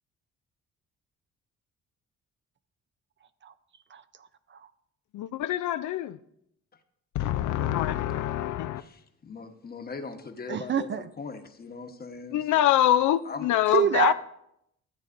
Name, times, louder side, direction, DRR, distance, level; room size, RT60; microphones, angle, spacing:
voice 1, 3.9-4.7 10.5-11.1 13.7-14.1, right 9 dB, 40° right, 0.5 m, -28 dB
voice 2, 5.1-6.2 7.1-8.8 12.3-14.1, left 12 dB, 75° left, 0.5 m, -25 dB
voice 3, 8.8-10.9 11.2-12.6 13.2-13.5, left 4 dB, 30° left, 1.1 m, -40 dB
13.5 x 8.1 x 2.6 m
cardioid pair, 90°, 30 cm